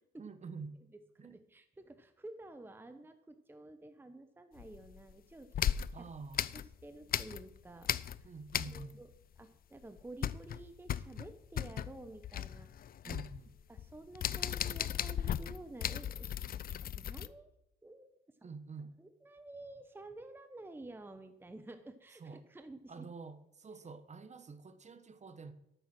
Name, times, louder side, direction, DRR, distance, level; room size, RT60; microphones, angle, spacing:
voice 1, 0.2-0.7 1.2-1.4 5.9-6.4 8.2-9.0 13.0-13.6 18.4-19.0 22.2-22.4 22.9-25.5, right 4 dB, 35° right, 1.1 m, -47 dB
voice 2, 0.9-6.1 6.5-8.3 8.6-9.1 9.4-12.7 13.0-13.2 13.7-16.4 16.7-17.5 17.8-18.4 19.0-23.1, right 2 dB, 10° right, 0.8 m, -51 dB
sound 1, 4.6-5.1 5.5-7.6 7.8-9.1 9.4-9.5 9.8-17.3, left 10 dB, 50° left, 0.5 m, -37 dB
12.5 x 7.0 x 6.1 m
cardioid pair, 90°, 20 cm